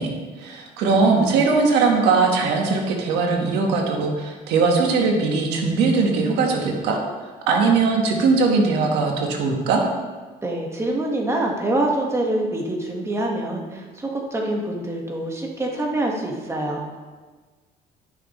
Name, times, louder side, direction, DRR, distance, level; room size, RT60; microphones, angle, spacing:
voice 1, 0.0-7.0 7.5-9.8, right 4 dB, 90° right, 1 dB, 1.4 m, -20 dB
voice 2, 10.4-17.0, right 1 dB, 15° right, 0 dB, 1.5 m, -25 dB
13.5 x 6.0 x 3.1 m, 1.4 s
cardioid pair, 110°, 17 cm